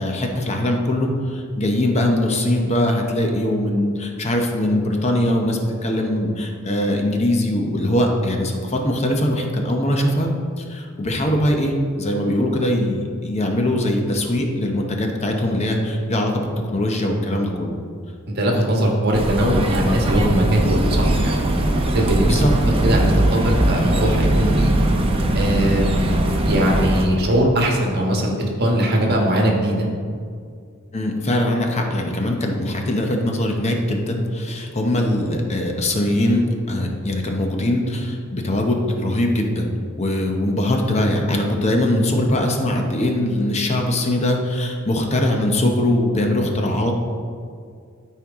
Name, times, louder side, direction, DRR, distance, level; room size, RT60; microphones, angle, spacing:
voice 1, 0.0-16.5 16.7-17.8 22.3-22.5 30.9-47.0, left 1 dB, 30° left, 2 dB, 0.8 m, -21 dB
voice 2, 18.3-21.5 21.9-22.4 22.8-23.0 23.3-24.7 25.3-26.0 26.4-29.9, right 1 dB, 50° right, 0 dB, 1.4 m, -20 dB
sound 1, 19.1-27.1, right 1 dB, 25° right, 0.7 m, -20 dB
Purr, 20.0-27.0, right 2 dB, 70° right, 0.4 m, -27 dB
12.5 x 4.6 x 3.6 m, 2.2 s
head